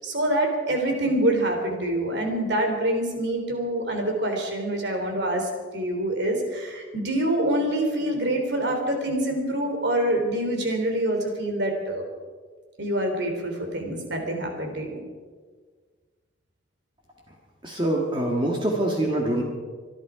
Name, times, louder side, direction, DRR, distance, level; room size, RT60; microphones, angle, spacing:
voice 1, 0.0-12.0 12.8-15.0, right 1 dB, 55° right, 3 dB, 3.3 m, -26 dB
voice 2, 17.6-19.4, right 1 dB, 25° right, -1 dB, 1.7 m, -24 dB
25.5 x 11.0 x 5.0 m, 1.5 s
head